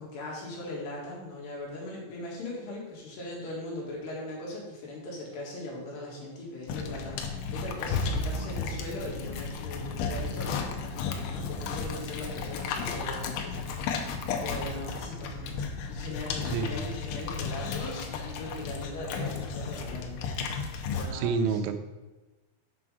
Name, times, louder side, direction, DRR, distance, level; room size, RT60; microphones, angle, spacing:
voice 1, 0.0-15.6 15.9-20.5 20.9-21.6, left 1 dB, 70° left, -3 dB, 3.9 m, -39 dB
sound 1, 6.7-21.1, left 5 dB, 85° left, 3.1 m, -34 dB
voice 2, 16.5-16.9 21.1-21.7, right 5 dB, 85° right, 8 dB, 3.0 m, -28 dB
7.8 x 6.1 x 5.0 m, 1.2 s
omnidirectional pair, 5.2 m